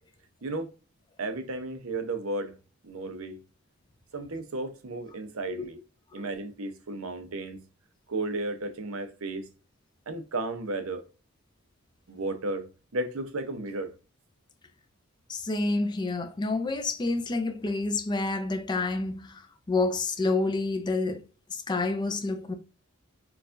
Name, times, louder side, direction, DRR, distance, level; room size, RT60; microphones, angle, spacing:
voice 1, 0.4-0.7 1.2-2.5 2.8-3.4 4.1-5.8 6.1-7.6 8.1-9.5 10.1-11.0 12.1-12.7 12.9-13.9, right 2 dB, 80° right, 0.7 m, -33 dB
voice 2, 15.3-19.3 19.7-21.2 21.5-22.5, left 3 dB, 20° left, 0.4 m, -28 dB
4.6 x 2.3 x 2.5 m
head